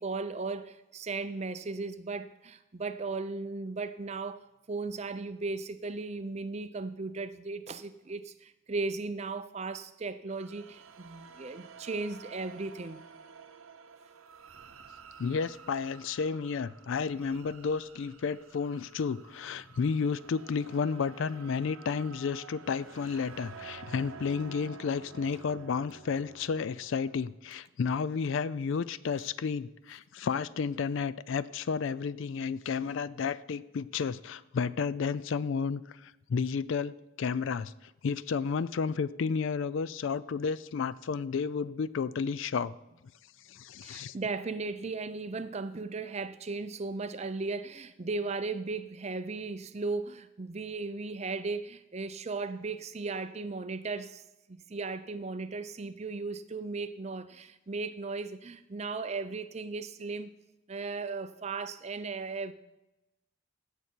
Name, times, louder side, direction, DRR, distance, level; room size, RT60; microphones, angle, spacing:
voice 1, 0.0-13.0 43.8-54.2 54.5-60.3 60.7-62.5, right 3 dB, 30° right, 12 dB, 0.5 m, -36 dB
sound 1, 10.3-27.3, right 5 dB, 75° right, 0.7 m, -51 dB
voice 2, 15.2-42.7 43.5-44.1, left 5 dB, 60° left, 18 dB, 0.4 m, -32 dB
16.5 x 7.0 x 4.5 m, 0.96 s
head